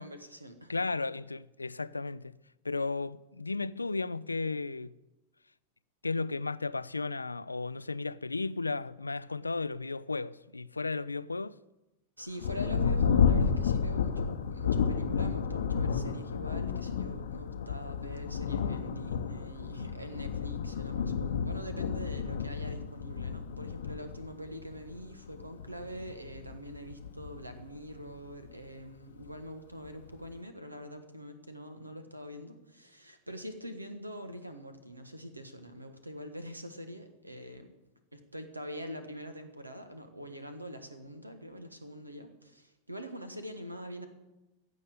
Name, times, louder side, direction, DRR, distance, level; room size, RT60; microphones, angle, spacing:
voice 1, 0.0-0.7 12.2-37.7 38.1-44.1, equal, 85° right, 1.4 m, -44 dB
voice 2, 0.7-2.4 2.6-4.9 6.0-11.6, left 3 dB, 80° left, 0.3 m, -34 dB
Thunder, 12.4-28.5 29.2-29.3 29.9-30.3, left 6 dB, 65° left, 0.8 m, -31 dB
15.5 x 5.4 x 9.2 m
figure-of-eight pair, 90°, 0 cm